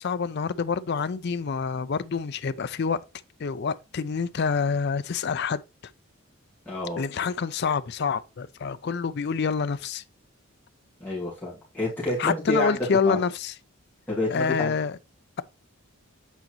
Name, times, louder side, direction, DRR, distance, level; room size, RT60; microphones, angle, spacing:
voice 1, 0.0-3.0 3.4-5.6 7.0-10.0 12.2-13.5 14.3-14.9, left 5 dB, 50° left, 0.4 m, -27 dB
voice 2, 6.7-7.0 11.0-13.2 14.1-14.8, left 2 dB, 10° left, 2.1 m, -28 dB
8.2 x 3.9 x 3.0 m
head